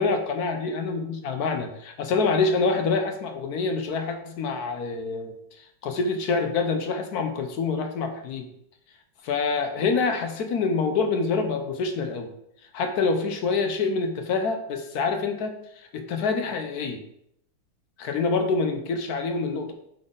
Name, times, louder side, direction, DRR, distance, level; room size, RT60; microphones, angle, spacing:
voice 1, 0.0-5.3 5.8-8.5 9.2-12.3 12.7-15.6 15.9-17.0 18.0-19.7, left 4 dB, 65° left, 6 dB, 1.0 m, -26 dB
8.6 x 4.1 x 3.8 m, 0.75 s
omnidirectional pair, 2.3 m